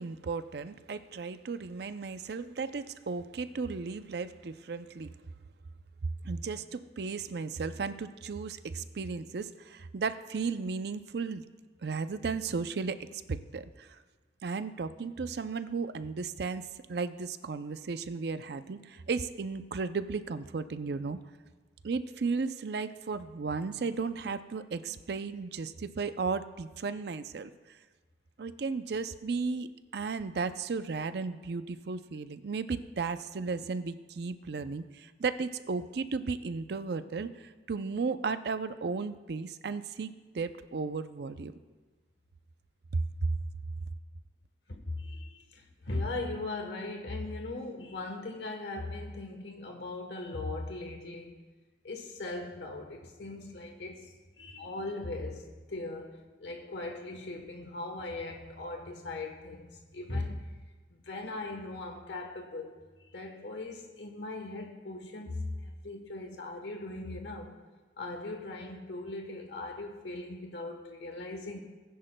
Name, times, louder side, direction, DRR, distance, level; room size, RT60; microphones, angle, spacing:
voice 1, 0.0-5.1 6.0-11.4 11.8-14.0 14.4-21.2 21.8-27.8 28.4-41.5 42.9-43.3, right 4 dB, 60° right, 11 dB, 0.5 m, -35 dB
voice 2, 44.7-51.4 51.8-60.5 61.0-62.8 63.1-67.6 68.0-71.6, left 2 dB, 75° left, 3 dB, 1.1 m, -39 dB
19.0 x 10.5 x 2.2 m, 1.3 s
head